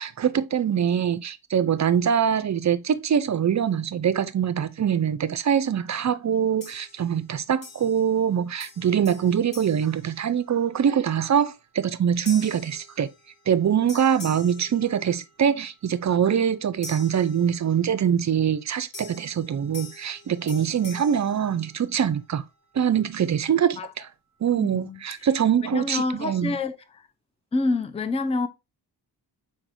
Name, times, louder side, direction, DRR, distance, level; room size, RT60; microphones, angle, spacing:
voice 1, 0.0-13.1 13.5-22.4 22.7-24.1 24.4-26.5, right 8 dB, 40° right, 0.4 m, -23 dB
sound 1, 6.6-7.3 7.6-8.3 8.6-10.8 11.3-11.6 12.3-13.6 13.9-15.5 16.8-18.0 18.9-22.2, left 3 dB, 85° left, 2.0 m, -45 dB
voice 2, 24.6-25.3 25.7-27.1 27.5-28.5, left 3 dB, 15° left, 0.4 m, -28 dB
4.7 x 4.2 x 2.6 m
cardioid pair, 65°, 43 cm